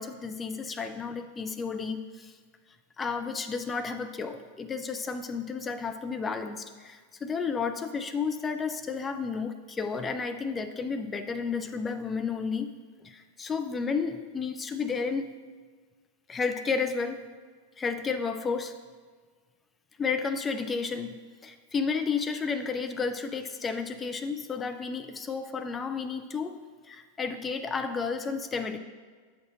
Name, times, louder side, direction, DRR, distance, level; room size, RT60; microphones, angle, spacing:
voice 1, 0.0-2.3 3.0-12.7 13.0-15.4 16.3-17.3 17.8-18.7 20.0-21.2 21.4-26.6 26.8-28.8, left 5 dB, 20° left, 7 dB, 0.5 m, -32 dB
7.9 x 6.2 x 3.8 m, 1.5 s
figure-of-eight pair, 90°, 0 cm